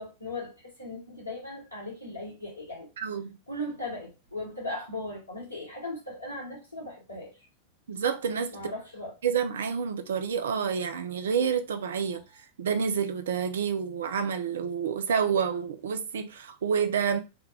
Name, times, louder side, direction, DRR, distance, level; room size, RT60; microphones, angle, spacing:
voice 1, 0.0-2.9 3.5-7.3 8.5-9.1 12.1-12.2, left 1 dB, 85° left, 1.6 m, -38 dB
voice 2, 3.0-3.4 7.9-8.6 9.2-12.2 12.6-17.2, right 7 dB, 65° right, 0.3 m, -28 dB
3.5 x 2.2 x 3.2 m
figure-of-eight pair, 90°, 0 cm